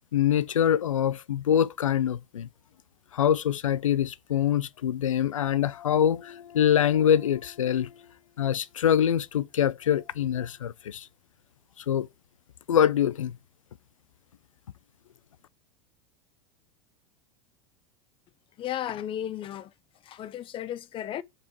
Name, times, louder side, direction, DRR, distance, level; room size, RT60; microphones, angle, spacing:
voice 1, 0.1-2.5 3.1-8.1 8.4-11.1 11.8-12.1 12.7-13.4, left 9 dB, 90° left, 0.4 m, -24 dB
voice 2, 18.6-19.7 20.1-21.2, left 11 dB, 30° left, 0.6 m, -34 dB
4.8 x 4.4 x 4.6 m
hypercardioid pair, 95°, 16 cm